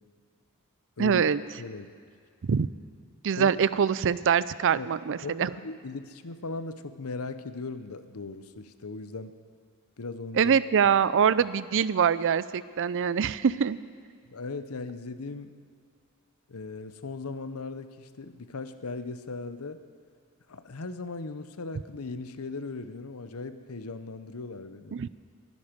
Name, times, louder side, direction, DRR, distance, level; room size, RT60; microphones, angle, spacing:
voice 1, 1.0-1.4 2.4-2.7 3.2-5.5 10.4-13.8 24.9-25.1, right 7 dB, 60° right, 17 dB, 0.4 m, -24 dB
voice 2, 3.4-3.8 4.8-4.9 5.2-9.3 10.0-10.6 14.3-15.5 16.5-19.8 20.5-25.0, left 3 dB, 75° left, 11 dB, 0.8 m, -38 dB
22.5 x 10.5 x 5.2 m, 2.2 s
head